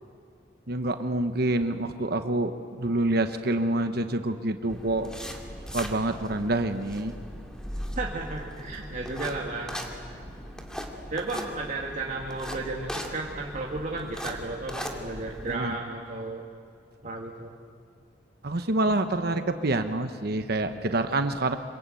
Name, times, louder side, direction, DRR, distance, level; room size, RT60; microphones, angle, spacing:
voice 1, 0.7-5.1 5.7-7.2 15.5-15.7 18.4-21.6, right 2 dB, 60° right, 8 dB, 1.1 m, -27 dB
sound 1, 4.7-15.6, equal, 5° left, 2.4 m, -39 dB
voice 2, 7.9-10.2 11.1-16.4 17.0-17.5, right 2 dB, 45° right, -2 dB, 2.2 m, -34 dB
26.5 x 22.5 x 9.2 m, 2.3 s
head